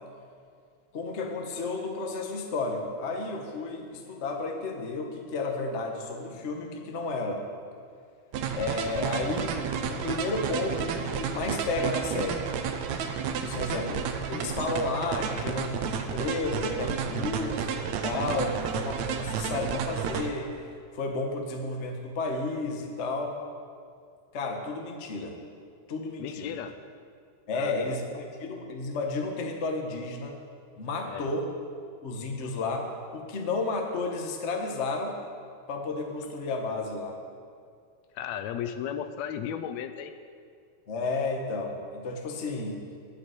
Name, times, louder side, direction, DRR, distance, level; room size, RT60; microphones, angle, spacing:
voice 1, 0.9-7.4 8.5-12.5 13.4-20.6 20.9-23.4 24.3-25.4 25.9-26.6 27.5-30.4 30.8-31.5 32.0-35.2 35.7-37.2 40.9-42.8, left 3 dB, 65° left, 2 dB, 0.6 m, -32 dB
sound 1, 8.3-20.3, right 7 dB, 75° right, 2.0 m, -31 dB
voice 2, 26.2-26.7 27.5-28.1 31.1-31.3 38.2-40.1, left 9 dB, 80° left, 9 dB, 1.8 m, -35 dB
9.3 x 8.5 x 9.3 m, 2.3 s
omnidirectional pair, 3.4 m